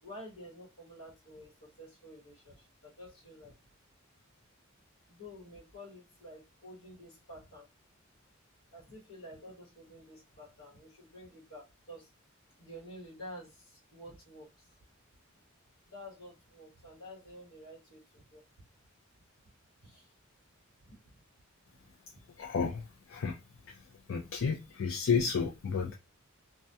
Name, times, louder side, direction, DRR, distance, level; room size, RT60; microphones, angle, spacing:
voice 1, 0.0-3.6 5.1-7.7 8.7-12.1 12.6-14.7 15.8-18.4 19.8-20.1 20.8-21.2, equal, 80° left, 1.0 m, -50 dB
voice 2, 22.4-23.4 23.6-25.9, left 5 dB, 65° left, 0.4 m, -32 dB
2.2 x 2.2 x 2.6 m
head